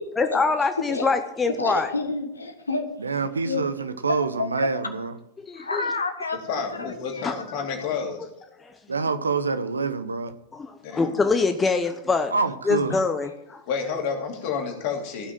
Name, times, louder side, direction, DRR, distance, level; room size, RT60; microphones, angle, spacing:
voice 1, 0.2-1.9 5.5-5.8 7.2-7.4 8.6-8.7 10.5-12.3 12.7-13.6, left 4 dB, 15° left, 7 dB, 0.8 m, -24 dB
voice 2, 1.6-2.9 3.4-3.7 4.4-4.5 5.6-6.4 7.1-7.3 12.9-13.0, left 3 dB, 75° left, 6 dB, 1.4 m, -29 dB
voice 3, 3.0-5.1 8.9-10.4 12.3-12.9, right 4 dB, 75° right, 12 dB, 0.8 m, -26 dB
voice 4, 6.5-8.3 10.8-11.1 13.7-15.3, left 6 dB, 45° left, 1 dB, 2.9 m, -30 dB
16.0 x 6.1 x 7.4 m, 0.82 s
figure-of-eight pair, 90°, 0 cm